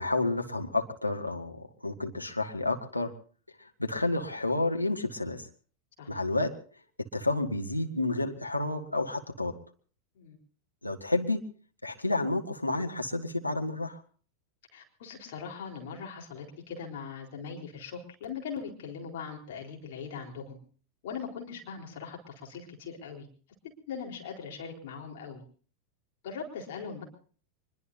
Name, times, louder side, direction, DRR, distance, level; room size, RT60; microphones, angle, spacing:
voice 1, 0.0-3.1 3.8-5.5 6.1-6.5 7.0-9.5 10.8-11.4 11.8-14.0, left 2 dB, 85° left, 3 dB, 1.5 m, -30 dB
voice 2, 14.7-20.6 21.0-23.3 23.9-25.4 26.2-27.0, left 6 dB, 55° left, 1 dB, 4.0 m, -40 dB
24.5 x 22.0 x 2.7 m, 0.42 s
figure-of-eight pair, 90°, 0 cm